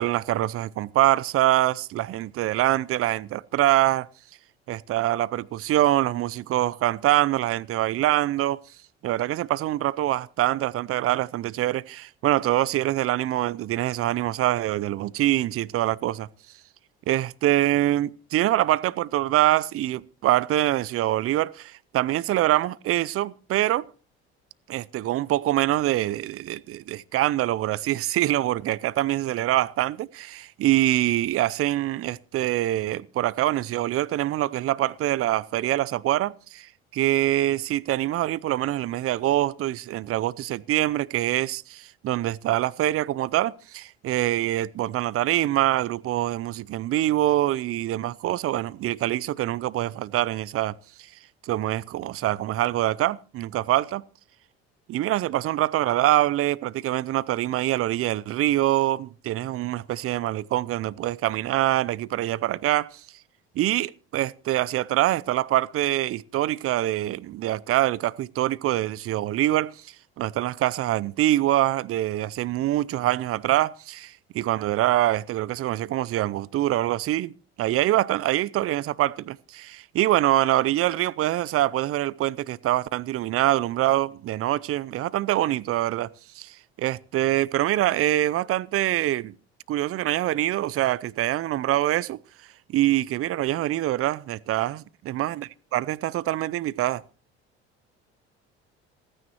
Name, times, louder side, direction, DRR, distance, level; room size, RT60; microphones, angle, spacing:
voice 1, 0.0-4.1 4.7-8.6 9.0-16.3 17.1-23.8 24.7-50.7 51.0-51.1 51.4-54.0 54.9-63.1 63.6-77.3 77.6-86.1 86.3-89.4 89.7-92.2 92.7-97.0, right 14 dB, 45° right, 0.6 m, -24 dB
27.0 x 9.8 x 3.0 m
hypercardioid pair, 60°, 31 cm